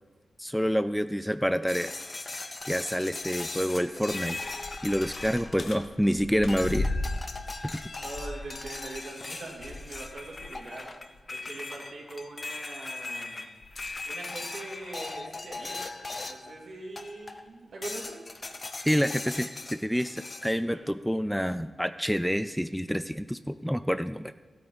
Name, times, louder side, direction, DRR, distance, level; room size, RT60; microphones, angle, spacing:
voice 1, 0.4-2.0 2.7-4.4 4.8-6.9 7.6-7.8 18.8-24.3, equal, ahead, 12 dB, 0.4 m, -28 dB
sound 1, 1.7-6.1 6.5-16.6 17.0-17.5 17.8-20.6, left 3 dB, 40° left, 0.8 m, -39 dB
sound 2, 2.6-2.7 3.2-3.3 3.9-10.6 11.0-11.2 13.6-16.0 17.0-17.1 17.9-18.0, left 2 dB, 65° left, 0.9 m, -38 dB
voice 2, 7.3-7.7 8.0-10.9 11.3-13.4 14.0-15.9 16.2-18.2 20.7-20.8, right 2 dB, 75° right, -3 dB, 3.0 m, -42 dB
14.0 x 8.5 x 4.1 m, 1.3 s
cardioid pair, 65°, 0 cm